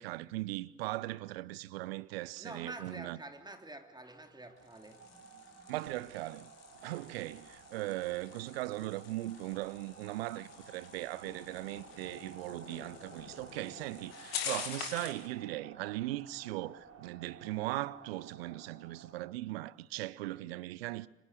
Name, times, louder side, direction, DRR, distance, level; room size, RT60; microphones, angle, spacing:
voice 1, 0.0-3.2 5.7-6.5 6.8-21.1, right 17 dB, 75° right, 0.6 m, -39 dB
voice 2, 2.4-5.2 5.5-5.7, right 2 dB, 15° right, 3.1 m, -48 dB
sound 1, 4.2-19.1, right 6 dB, 50° right, 3.7 m, -55 dB
sound 2, 4.6-15.3, left 8 dB, 80° left, 2.2 m, -46 dB
25.0 x 19.5 x 6.6 m
figure-of-eight pair, 40°, 30 cm